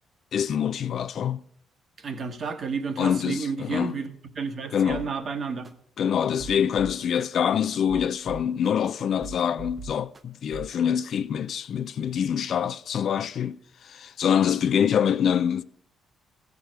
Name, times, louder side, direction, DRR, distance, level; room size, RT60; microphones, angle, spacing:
voice 1, 0.3-1.4 3.0-4.0 4.7-5.1 6.0-15.6, left 8 dB, 65° left, 0.4 m, -25 dB
voice 2, 2.0-5.8, right 5 dB, 50° right, 1.1 m, -31 dB
sound 1, 4.9-5.1 5.6-5.7 6.2-7.2 7.7-8.9 9.2-10.2 10.5-10.8, right 3 dB, 30° right, 0.7 m, -40 dB
14.5 x 4.8 x 6.1 m
cardioid pair, 90°, 0 cm